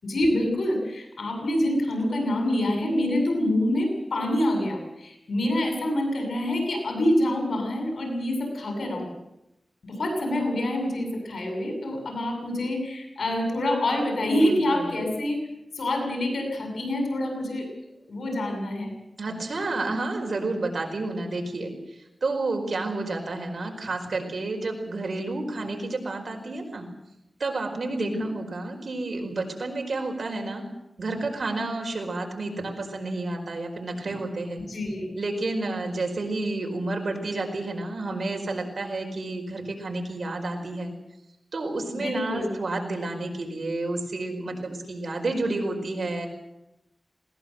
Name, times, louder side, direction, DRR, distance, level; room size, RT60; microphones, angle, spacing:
voice 1, 0.0-9.1 9.8-15.4 15.7-17.7 18.1-18.9 27.9-28.2 34.7-35.1 41.9-42.5, left 1 dB, 85° left, 3 dB, 7.5 m, -26 dB
voice 2, 14.3-14.9 19.2-21.7 22.2-26.8 27.4-30.6 31.0-34.6 35.2-40.9 41.5-46.3, right 2 dB, 65° right, 2 dB, 5.0 m, -30 dB
20.5 x 19.0 x 7.9 m, 0.88 s
wide cardioid pair, 100°, 0 cm